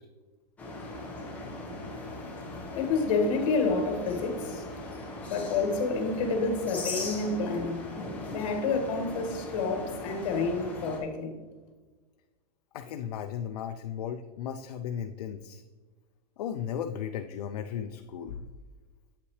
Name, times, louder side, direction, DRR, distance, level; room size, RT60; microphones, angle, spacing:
sound 1, 0.6-11.0, left 2 dB, 5° left, 1.1 m, -39 dB
voice 1, 2.7-4.7 5.3-7.8 8.3-11.3, left 3 dB, 50° left, 4 dB, 1.7 m, -29 dB
voice 2, 12.7-15.6 16.4-18.5, left 8 dB, 75° left, 6 dB, 0.5 m, -35 dB
8.4 x 5.7 x 3.2 m, 1.3 s
supercardioid pair, 165°, 20 cm